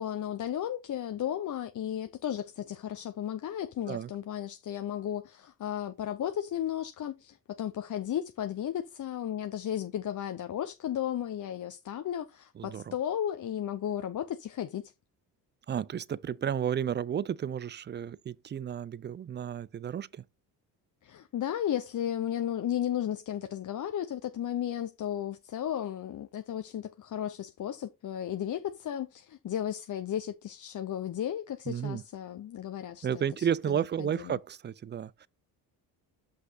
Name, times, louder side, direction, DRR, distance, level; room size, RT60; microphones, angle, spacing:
voice 1, 0.0-14.9 21.0-34.4, left 10 dB, 45° left, 0.8 m, -34 dB
voice 2, 12.6-12.9 15.7-20.2 31.7-32.0 33.0-35.3, right 9 dB, 25° right, 0.4 m, -32 dB
5.9 x 5.3 x 4.0 m
supercardioid pair, 75°, 42 cm